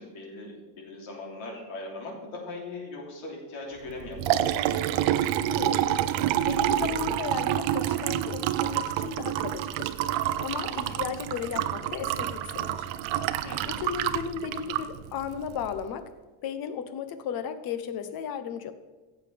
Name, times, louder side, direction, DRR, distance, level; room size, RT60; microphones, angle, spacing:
voice 1, 0.0-5.1 10.7-11.1 13.4-13.8, left 2 dB, 75° left, -1 dB, 3.3 m, -40 dB
Liquid, 3.9-15.8, right 12 dB, 65° right, 0.7 m, -28 dB
voice 2, 5.5-5.9 6.2-9.9 10.4-12.9 13.7-16.1 16.4-18.7, left 8 dB, 50° left, 11 dB, 0.9 m, -35 dB
15.0 x 7.9 x 3.4 m, 1.3 s
cardioid pair, 160°, 49 cm